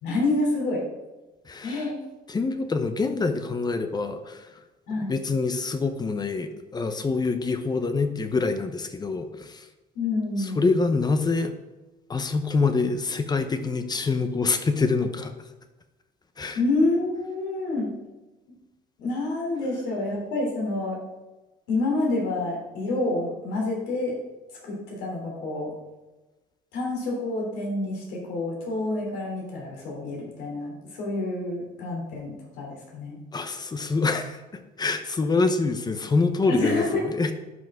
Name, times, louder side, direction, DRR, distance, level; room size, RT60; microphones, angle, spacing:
voice 1, 0.0-0.8 1.6-2.0 4.9-5.2 9.9-10.9 16.5-17.9 18.5-18.6 19.0-21.0 21.7-24.2 24.6-25.7 26.7-33.2 36.5-37.0, left 2 dB, 80° left, -2 dB, 3.2 m, -28 dB
voice 2, 1.5-1.9 2.3-4.5 5.1-9.7 10.4-11.5 12.1-15.3 16.4-16.6 33.3-34.4 34.8-37.3, left 3 dB, 25° left, 8 dB, 0.8 m, -25 dB
11.0 x 5.6 x 3.7 m, 1.1 s
cardioid pair, 110°, 17 cm